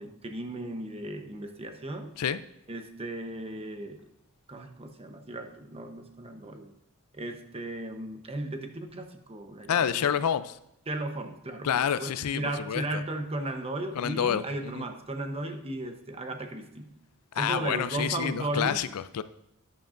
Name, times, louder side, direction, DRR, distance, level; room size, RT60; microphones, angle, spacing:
voice 1, 0.0-2.1 2.7-4.1 4.5-6.7 7.1-10.1 10.9-17.0 17.3-18.8, right 2 dB, 25° right, 0.8 m, -36 dB
voice 2, 9.7-10.6 11.6-12.8 14.0-14.9 17.3-19.2, left 8 dB, 85° left, 0.4 m, -28 dB
10.5 x 10.0 x 2.5 m
head